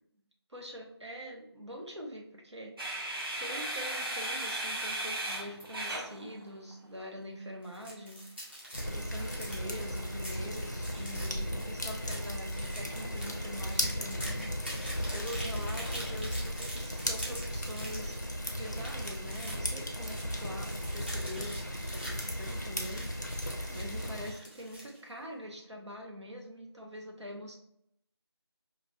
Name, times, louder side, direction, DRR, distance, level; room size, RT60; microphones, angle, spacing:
voice 1, 0.5-14.8 15.1-18.2 18.6-27.5, equal, 85° right, 0 dB, 1.0 m, -44 dB
sound 1, 2.8-6.8 9.2-17.2, right 1 dB, 55° right, 1.0 m, -41 dB
sound 2, 7.6-25.0, equal, 25° right, 0.6 m, -46 dB
sound 3, 8.7-24.3, equal, 40° left, 0.5 m, -36 dB
4.8 x 2.5 x 2.4 m, 0.76 s
figure-of-eight pair, 175°, 14 cm